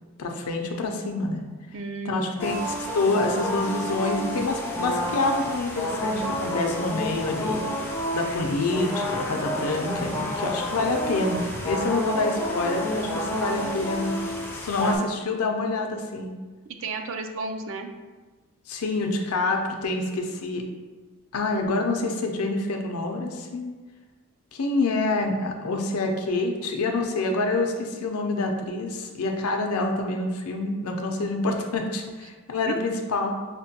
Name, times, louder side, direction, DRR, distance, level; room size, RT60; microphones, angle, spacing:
voice 1, 0.2-1.4 2.0-2.5 2.9-7.9 8.1-14.1 14.5-16.3 18.7-20.7 21.3-23.7 24.5-33.4, left 2 dB, 85° left, 3 dB, 0.5 m, -27 dB
voice 2, 1.7-2.5 16.8-17.9 32.7-32.8, right 3 dB, 60° right, 6 dB, 0.4 m, -33 dB
sound 1, 2.4-15.0, equal, 10° left, 0.4 m, -30 dB
5.9 x 2.2 x 2.8 m, 1.3 s
head